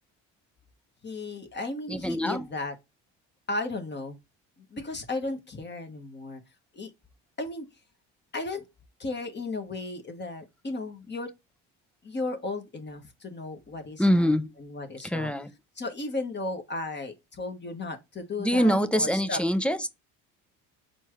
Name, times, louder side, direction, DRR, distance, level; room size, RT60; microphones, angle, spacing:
voice 1, 1.0-2.7 3.5-4.2 4.6-6.4 6.7-6.9 7.4-7.7 8.3-8.6 9.0-11.3 12.0-15.3 15.8-19.4, left 2 dB, 30° left, 1.4 m, -35 dB
voice 2, 1.9-2.4 14.0-14.5 15.0-15.5 18.4-19.9, equal, 5° left, 0.5 m, -24 dB
4.3 x 3.5 x 3.1 m
supercardioid pair, 85°, 38 cm